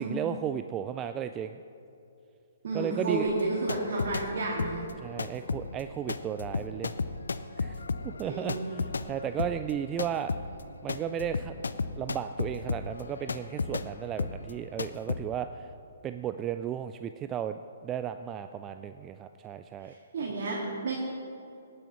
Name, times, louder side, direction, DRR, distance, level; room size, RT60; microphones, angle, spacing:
voice 1, 0.0-1.6 2.7-3.3 5.0-6.9 7.6-10.3 10.8-11.6 12.0-15.7 16.0-19.9, right 9 dB, 20° right, 9 dB, 0.3 m, -34 dB
voice 2, 2.6-4.9 8.2-8.7 19.8-21.0, right 2 dB, 50° right, -4 dB, 1.9 m, -31 dB
sound 1, 3.3-4.3 4.6-13.9 14.2-14.5 14.8-15.2, left 4 dB, 70° left, 0.5 m, -34 dB
18.5 x 9.6 x 3.0 m, 2.7 s
figure-of-eight pair, 130°, 0 cm